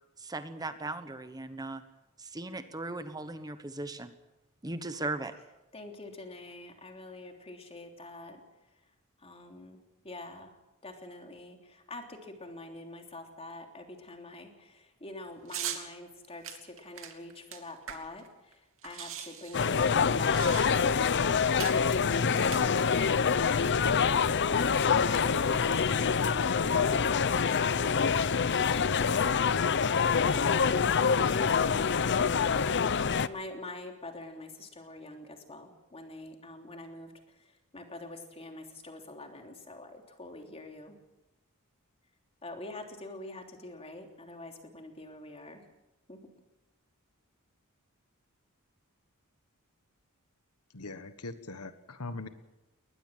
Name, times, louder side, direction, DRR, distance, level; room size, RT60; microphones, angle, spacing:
voice 1, 0.2-1.8 2.2-4.2 4.6-5.3, right 2 dB, 15° right, 10 dB, 1.2 m, -38 dB
voice 2, 5.7-8.4 9.2-10.5 10.8-18.6 18.8-19.8 20.2-21.4 24.0-28.1 28.7-29.5 30.3-30.7 31.3-32.8 33.2-37.1 37.7-41.0 42.4-45.6 46.1-46.2, left 2 dB, 25° left, 3 dB, 3.2 m, -46 dB
sound 1, 15.5-15.8 16.4-18.3 18.5-18.6 18.8-21.0 21.6-21.8 22.4-23.1, right 10 dB, 65° right, 2.7 m, -40 dB
sound 2, 19.5-33.3, left 6 dB, 55° left, 0.7 m, -26 dB
voice 3, 50.7-52.3, left 2 dB, 85° left, 11 dB, 1.5 m, -41 dB
21.5 x 19.5 x 7.5 m, 0.98 s
head